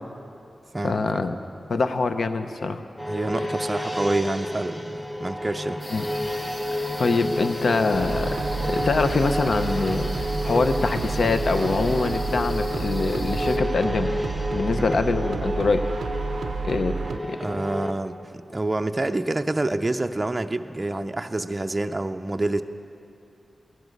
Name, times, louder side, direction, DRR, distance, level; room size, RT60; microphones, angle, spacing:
voice 1, 0.8-1.3 1.7-2.8 5.9-6.0 6.7-8.4 8.6-10.1 10.4-14.1 14.5-15.8 16.6-17.0 17.3-17.4, left 3 dB, 65° left, 9 dB, 0.7 m, -24 dB
sound 1, 3.0-17.9, left 1 dB, ahead, 0.9 m, -30 dB
voice 2, 3.1-5.8 17.4-22.6, right 2 dB, 25° right, 7 dB, 0.5 m, -27 dB
sound 2, 5.8-13.6, left 1 dB, 30° left, 1.2 m, -40 dB
sound 3, 7.9-17.2, right 4 dB, 85° right, 0.4 m, -30 dB
15.5 x 12.5 x 5.3 m, 2.6 s
wide cardioid pair, 90°, 0 cm